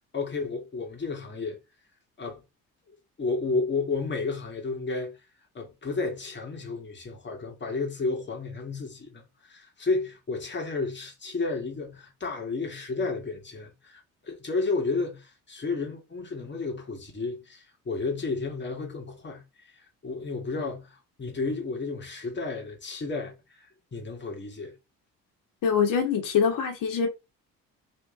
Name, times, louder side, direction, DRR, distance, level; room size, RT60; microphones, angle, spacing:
voice 1, 0.1-1.6 2.2-2.4 3.2-5.2 5.5-19.7 20.0-23.3 23.6-24.7, left 3 dB, 35° left, 2.1 m, -32 dB
voice 2, 25.6-27.1, left 6 dB, 70° left, 1.8 m, -24 dB
3.6 x 3.6 x 3.8 m
cardioid pair, 85°, 33 cm